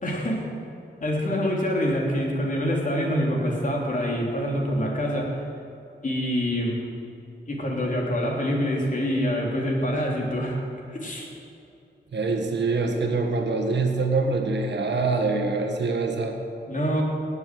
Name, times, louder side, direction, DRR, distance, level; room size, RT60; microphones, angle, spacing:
voice 1, 0.0-0.4 1.0-5.4 6.0-6.8 7.5-10.6 10.9-11.3 16.7-17.0, equal, 50° left, -2 dB, 3.4 m, -26 dB
voice 2, 12.1-16.4, right 3 dB, 80° right, 3 dB, 1.7 m, -24 dB
18.0 x 7.2 x 7.8 m, 2.7 s
wide cardioid pair, 85°, 18 cm